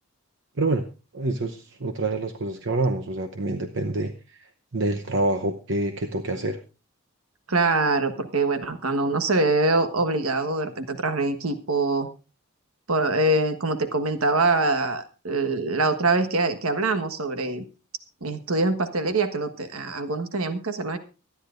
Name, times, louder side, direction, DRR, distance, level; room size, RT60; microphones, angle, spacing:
voice 1, 1.1-6.6, right 2 dB, 60° right, 5 dB, 0.9 m, -27 dB
voice 2, 7.5-12.1 12.9-17.6 18.2-21.0, right 3 dB, 80° right, 9 dB, 1.4 m, -24 dB
24.0 x 10.0 x 2.6 m, 0.32 s
head